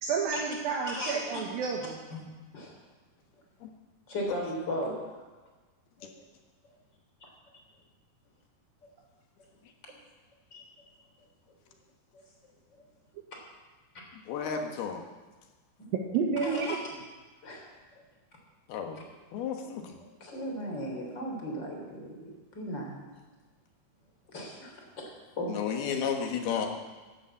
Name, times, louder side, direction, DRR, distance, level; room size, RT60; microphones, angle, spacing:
voice 1, 0.0-2.0 16.1-16.8, right 5 dB, 75° right, 0 dB, 2.9 m, -30 dB
voice 2, 4.1-5.1 6.0-6.1 9.9-10.0 10.5-10.6 12.1-12.2 12.8-12.9 16.4-16.8 17.4-17.6 20.0-23.1 24.3-25.1 25.4-25.6, equal, 30° left, 0 dB, 3.7 m, -36 dB
voice 3, 14.1-15.0 18.7-19.0 19.3-19.9 25.5-26.7, left 7 dB, 85° left, 3 dB, 3.4 m, -32 dB
11.5 x 11.5 x 8.1 m, 1.3 s
omnidirectional pair, 4.4 m